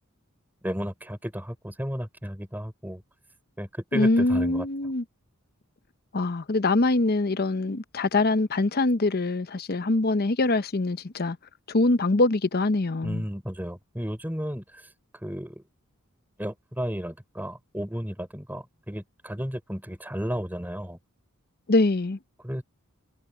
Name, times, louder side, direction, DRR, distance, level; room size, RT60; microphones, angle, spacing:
voice 1, 0.6-3.0 3.6-4.7 13.0-14.9 15.1-15.6 16.4-21.0 22.4-22.6, equal, 10° right, 6.1 m, -33 dB
voice 2, 3.9-5.0 6.1-11.4 11.7-13.2 21.7-22.2, left 2 dB, 45° left, 0.8 m, -23 dB
head